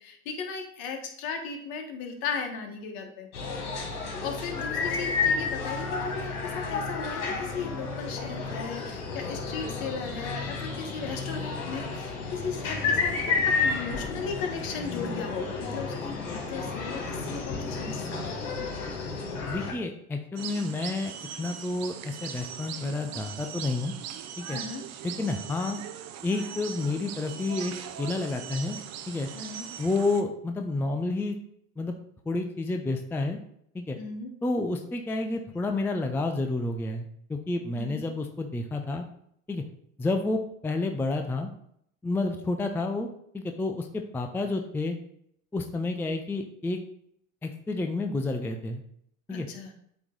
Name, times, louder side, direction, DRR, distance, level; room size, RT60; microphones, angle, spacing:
voice 1, 0.0-3.3 4.2-18.2 24.5-24.8 29.3-29.7 34.0-34.3 37.7-38.0 49.3-49.7, left 5 dB, 60° left, 4 dB, 1.4 m, -36 dB
sound 1, 3.3-19.7, left 4 dB, 75° left, 2.1 m, -31 dB
voice 2, 19.5-23.9 24.4-24.6 25.0-25.8 26.2-28.8 29.1-29.3 29.8-31.4 31.8-31.9 32.3-33.4 33.7-34.0 34.4-39.0 39.5-39.6 40.0-41.5 42.0-43.1 43.3-45.0 45.5-46.8 47.4-48.8 49.3-49.5, left 2 dB, 5° left, 5 dB, 0.4 m, -30 dB
sound 2, 20.4-30.2, right 9 dB, 40° right, 0.6 m, -40 dB
8.1 x 3.1 x 3.8 m, 0.69 s
hypercardioid pair, 95°, 41 cm